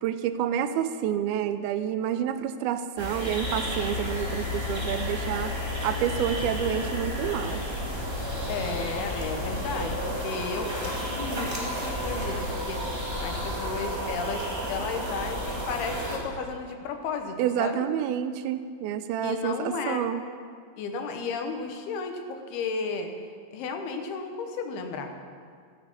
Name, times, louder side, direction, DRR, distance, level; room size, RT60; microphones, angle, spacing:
voice 1, 0.0-5.5 5.8-7.6 17.4-20.2, right 9 dB, 85° right, 11 dB, 2.5 m, -28 dB
sound 1, 3.0-16.2, equal, 10° right, 1.4 m, -31 dB
voice 2, 8.5-17.8 19.2-20.0 20.8-23.1 23.5-25.1, left 4 dB, 85° left, 5 dB, 3.1 m, -34 dB
15.0 x 8.8 x 7.3 m, 2.1 s
omnidirectional pair, 4.4 m